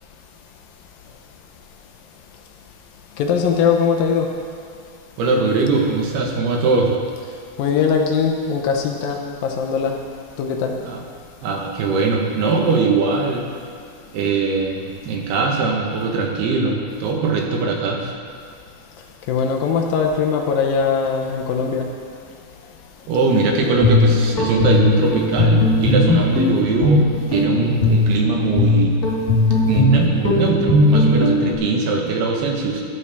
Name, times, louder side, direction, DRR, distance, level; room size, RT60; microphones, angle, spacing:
voice 1, 3.2-4.3 7.6-10.0 10.4-10.7 19.3-21.9, left 6 dB, 75° left, 2 dB, 2.4 m, -20 dB
voice 2, 5.2-6.9 10.8-11.0 11.4-13.4 14.1-18.1 23.1-29.0 29.6-32.8, right 4 dB, 85° right, 1 dB, 3.3 m, -21 dB
Guitar, 23.6-31.5, left 2 dB, 50° left, 1.1 m, -18 dB
13.5 x 9.7 x 3.5 m, 2.3 s
omnidirectional pair, 4.5 m